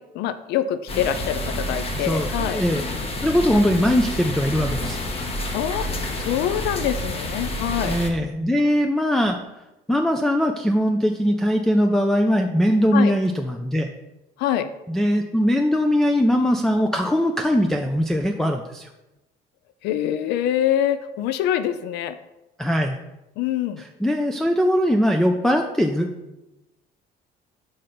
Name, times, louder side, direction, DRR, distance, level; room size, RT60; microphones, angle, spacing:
voice 1, 0.1-2.6 5.5-5.9 6.2-8.0 12.9-13.1 14.4-14.7 19.8-22.2 23.4-23.8, left 10 dB, 85° left, 12 dB, 0.4 m, -25 dB
sound 1, 0.9-8.1, left 1 dB, 35° left, 0.9 m, -29 dB
voice 2, 2.0-2.9 3.2-5.0 7.8-9.4 9.9-13.9 14.9-18.9 22.6-23.0 24.0-26.1, equal, 5° left, 2 dB, 0.4 m, -21 dB
5.1 x 3.9 x 5.8 m, 0.98 s
cardioid pair, 110°, 17 cm